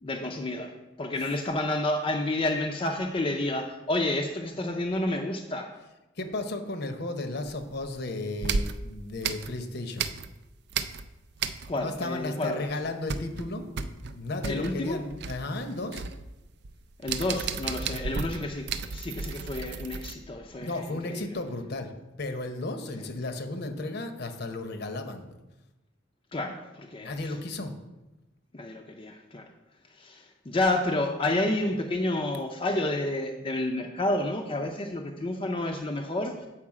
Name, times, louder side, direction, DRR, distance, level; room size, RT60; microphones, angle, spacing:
voice 1, 0.0-5.7 11.7-12.7 14.4-15.0 17.0-21.3 26.3-27.3 28.5-29.5 29.9-36.5, left 1 dB, 30° left, 2 dB, 0.5 m, -30 dB
voice 2, 6.2-10.1 11.8-16.0 17.8-18.1 20.6-21.9 22.2-25.2 27.0-27.7, left 2 dB, 55° left, 7 dB, 0.8 m, -34 dB
sound 1, 7.5-8.0 8.4-10.4 10.7-12.0 12.3-12.4 12.7-20.1, right 5 dB, 60° right, 0.4 m, -34 dB
7.3 x 4.8 x 4.8 m, 1.0 s
head